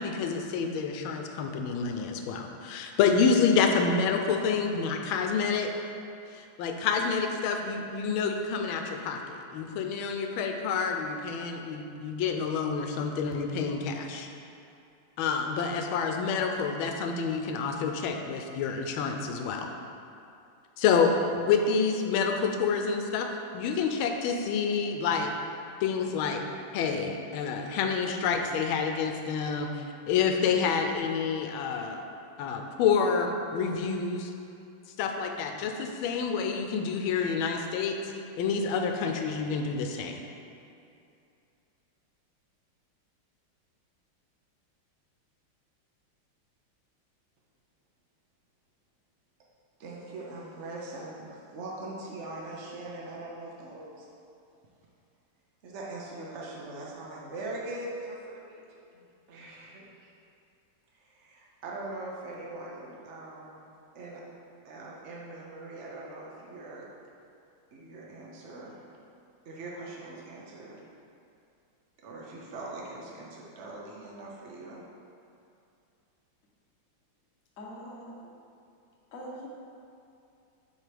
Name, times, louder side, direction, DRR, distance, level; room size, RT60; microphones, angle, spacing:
voice 1, 0.0-5.7 6.3-14.3 15.2-19.7 20.8-23.3 23.5-25.3 25.8-26.4 26.7-32.0 32.4-34.3 35.0-38.0 38.4-40.2, left 5 dB, 85° left, 4 dB, 1.4 m, -28 dB
voice 2, 49.8-54.1 55.6-60.1 60.9-63.7 63.9-64.2 64.6-66.9 67.7-68.8 69.5-70.8 72.0-74.8, right 2 dB, 80° right, -3 dB, 0.6 m, -42 dB
voice 3, 77.6-78.1 79.1-79.5, equal, 55° left, -3 dB, 1.0 m, -42 dB
7.4 x 3.9 x 3.3 m, 2.6 s
omnidirectional pair, 2.2 m